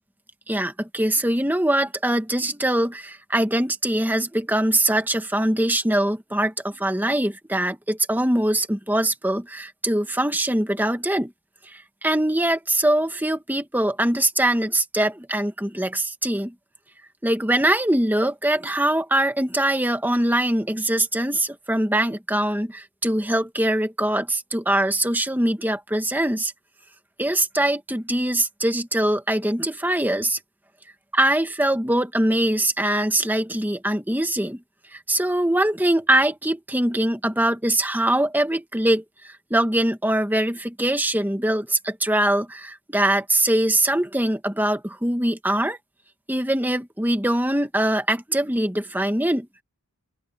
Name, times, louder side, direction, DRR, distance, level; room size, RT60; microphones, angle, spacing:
voice 1, 0.5-11.3 11.7-16.5 17.2-26.5 27.2-30.4 31.1-34.6 34.9-45.8 46.3-49.5, right 1 dB, 10° right, 1.7 m, -22 dB
open air
head